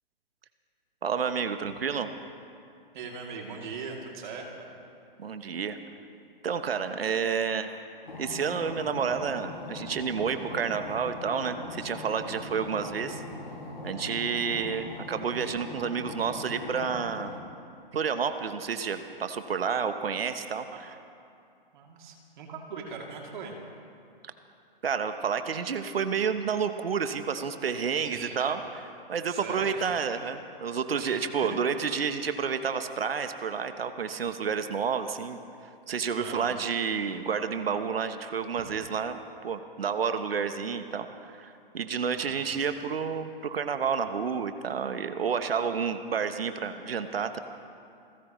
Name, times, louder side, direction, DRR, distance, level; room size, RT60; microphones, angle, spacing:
voice 1, 1.0-2.1 5.2-5.8 6.4-7.7 8.2-13.2 13.8-17.4 17.9-21.0 24.8-28.8 29.1-35.4 35.9-39.2 39.4-47.4, right 6 dB, 80° right, 9 dB, 1.0 m, -30 dB
voice 2, 2.9-4.7 14.0-14.5 20.7-20.8 21.7-23.5 28.0-28.6 29.2-29.9 30.9-31.6 36.2-36.6 42.1-42.4, right 5 dB, 55° right, 0 dB, 2.8 m, -41 dB
sound 1, 8.1-17.4, left 2 dB, 85° left, 2.8 m, -41 dB
29.0 x 14.0 x 3.1 m, 2.5 s
hypercardioid pair, 130°, 29 cm